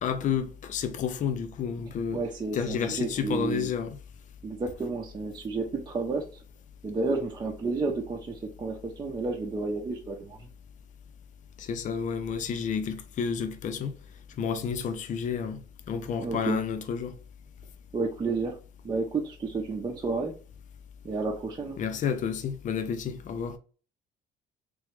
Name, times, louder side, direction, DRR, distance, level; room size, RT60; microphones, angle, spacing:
voice 1, 0.0-2.2 2.5-4.0 11.6-14.0 14.4-15.6 15.9-17.1 21.8-23.6, left 7 dB, 45° left, 0.6 m, -30 dB
voice 2, 2.1-3.7 4.4-6.4 6.8-10.5 16.2-16.6 17.9-18.6 18.8-20.3 21.0-21.8, right 3 dB, 25° right, 0.7 m, -31 dB
3.5 x 3.1 x 3.2 m
cardioid pair, 110°, 17 cm